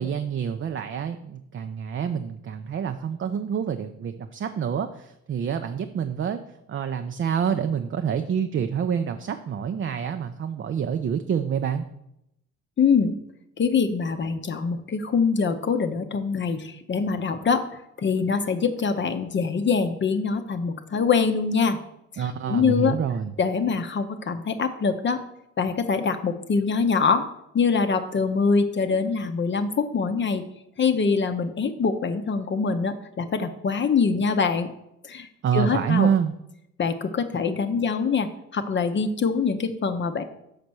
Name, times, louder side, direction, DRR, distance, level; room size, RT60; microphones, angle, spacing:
voice 1, 0.0-6.4 6.7-11.9 22.2-23.3 35.4-36.3, right 7 dB, 40° right, 8 dB, 0.5 m, -27 dB
voice 2, 12.8-13.2 13.6-21.8 22.2-22.9 23.4-25.2 25.6-27.3 27.5-30.4 30.8-34.7 35.0-36.1 36.8-40.2, left 5 dB, 40° left, 7 dB, 0.6 m, -24 dB
6.7 x 4.1 x 6.1 m, 0.82 s
cardioid pair, 90°, 30 cm